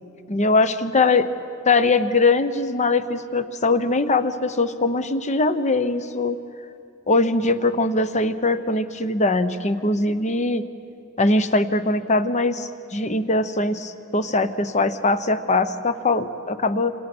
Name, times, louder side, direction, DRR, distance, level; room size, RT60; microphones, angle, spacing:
voice 1, 0.3-1.3 1.6-6.4 7.1-10.6 11.2-16.9, left 3 dB, 30° left, 11 dB, 1.0 m, -21 dB
27.5 x 27.0 x 6.2 m, 2.6 s
head